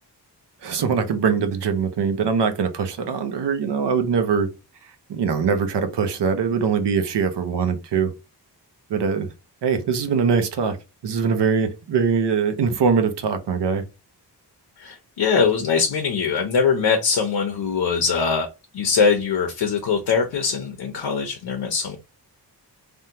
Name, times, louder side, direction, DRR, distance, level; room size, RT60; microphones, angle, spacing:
voice 1, 0.6-4.5 5.1-8.1 8.9-9.3 9.6-10.8 11.0-13.8, right 6 dB, 80° right, 0.7 m, -22 dB
voice 2, 14.8-18.5 18.7-22.0, left 5 dB, 80° left, 0.7 m, -22 dB
3.4 x 2.2 x 2.7 m
wide cardioid pair, 175°, 41 cm